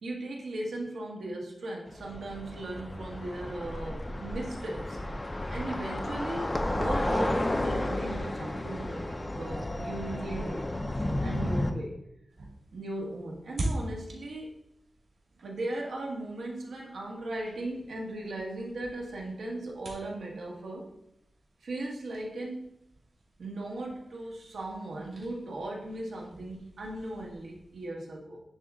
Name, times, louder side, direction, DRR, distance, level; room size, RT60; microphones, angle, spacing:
voice 1, 0.0-5.0 5.5-10.6 11.0-11.9 12.7-14.6 15.4-20.9 21.6-22.7 23.4-28.4, right 1 dB, 80° right, -2 dB, 1.6 m, -37 dB
sound 1, 1.9-11.7, left 1 dB, 20° left, 0.5 m, -32 dB
sound 2, 12.3-27.9, right 1 dB, 60° right, 2.6 m, -44 dB
9.8 x 3.7 x 3.8 m, 0.79 s
wide cardioid pair, 175°, 0 cm